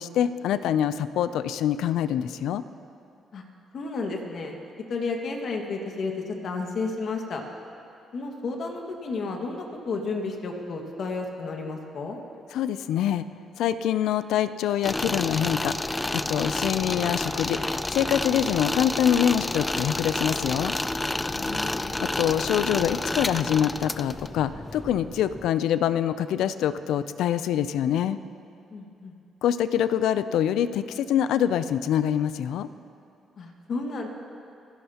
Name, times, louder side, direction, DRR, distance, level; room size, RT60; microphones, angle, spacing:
voice 1, 0.0-2.6 12.5-13.3 13.6-17.6 17.9-20.7 22.0-28.2 29.4-32.7, left 10 dB, 80° left, 13 dB, 0.4 m, -25 dB
voice 2, 3.7-4.6 4.9-7.4 8.1-12.2 21.3-21.8 28.7-29.1 33.4-34.1, left 3 dB, 60° left, 2 dB, 1.8 m, -32 dB
sound 1, 14.8-25.5, left 2 dB, 15° left, 0.4 m, -30 dB
29.0 x 11.0 x 2.9 m, 2.5 s
cardioid pair, 90°, 0 cm